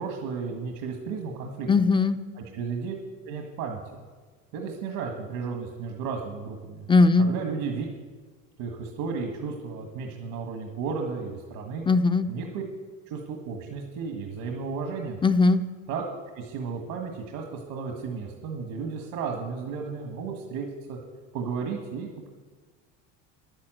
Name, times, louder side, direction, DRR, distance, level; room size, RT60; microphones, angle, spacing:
voice 1, 0.0-1.7 2.4-2.9 3.2-3.8 4.5-6.9 7.2-7.9 8.6-11.8 12.3-12.6 13.1-15.2 15.9-16.0 16.4-21.0 21.3-22.3, right 5 dB, 75° right, 3 dB, 1.8 m, -33 dB
voice 2, 1.7-2.2 6.9-7.3 11.9-12.3 15.2-15.6, left 3 dB, 15° left, 10 dB, 0.4 m, -19 dB
11.0 x 10.0 x 7.8 m, 1.4 s
cardioid pair, 120°, 34 cm